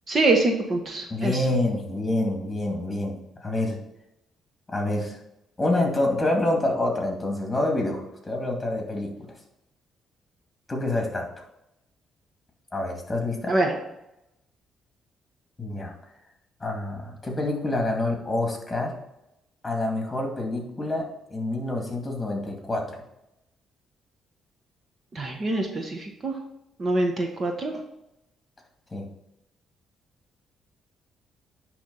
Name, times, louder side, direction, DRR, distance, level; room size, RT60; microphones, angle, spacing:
voice 1, 0.1-1.4 13.5-13.8 25.1-26.4 26.8-27.8, right 2 dB, 40° right, 2 dB, 1.3 m, -24 dB
voice 2, 1.1-3.8 4.7-5.2 5.6-9.1 10.7-11.4 12.7-13.5 15.6-15.9 16.6-18.9 19.6-22.9 28.9-29.1, left 2 dB, 20° left, 1 dB, 2.4 m, -27 dB
10.0 x 3.5 x 5.5 m, 0.86 s
cardioid pair, 90°, 0 cm